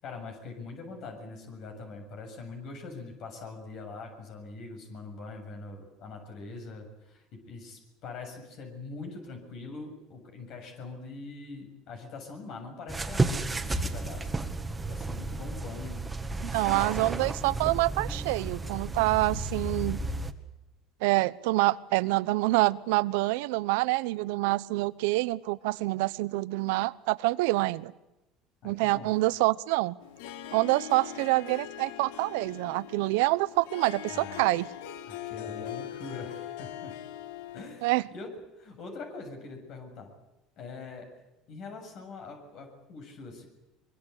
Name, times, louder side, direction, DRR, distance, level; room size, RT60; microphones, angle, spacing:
voice 1, 0.0-14.5 14.9-16.0 16.4-16.8 28.6-29.1 34.1-34.5 35.1-37.0 37.5-40.1 40.6-41.1 41.5-43.5, left 3 dB, 55° left, 4 dB, 7.2 m, -43 dB
sound 1, 12.9-20.3, right 2 dB, 15° right, 2.0 m, -32 dB
voice 2, 16.5-20.0 21.0-27.9 28.6-30.0 30.5-34.7 37.8-38.0, right 21 dB, 85° right, 18 dB, 0.9 m, -26 dB
Harp, 30.0-37.9, left 12 dB, 85° left, 1.7 m, -41 dB
23.5 x 23.5 x 8.4 m, 0.97 s
supercardioid pair, 115°, 0 cm